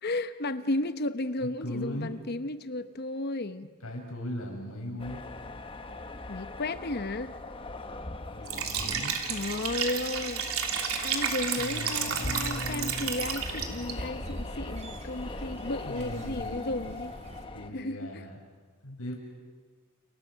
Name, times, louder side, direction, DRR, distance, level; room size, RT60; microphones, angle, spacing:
voice 1, 0.0-3.7 6.3-7.3 8.8-10.4 11.0-17.1 17.7-18.2, left 2 dB, 50° left, 11 dB, 0.9 m, -34 dB
voice 2, 1.6-2.1 3.8-5.2 8.2-9.1 11.6-13.0 15.8-16.6 17.5-18.4 18.8-19.2, left 1 dB, 90° left, 1 dB, 7.0 m, -38 dB
sound 1, 5.0-17.7, left 2 dB, 25° left, 1.2 m, -41 dB
Liquid, 8.4-13.9, right 7 dB, 80° right, 3.1 m, -31 dB
sound 2, 12.4-17.5, right 1 dB, 30° right, 2.5 m, -44 dB
30.0 x 30.0 x 6.4 m, 1.5 s
head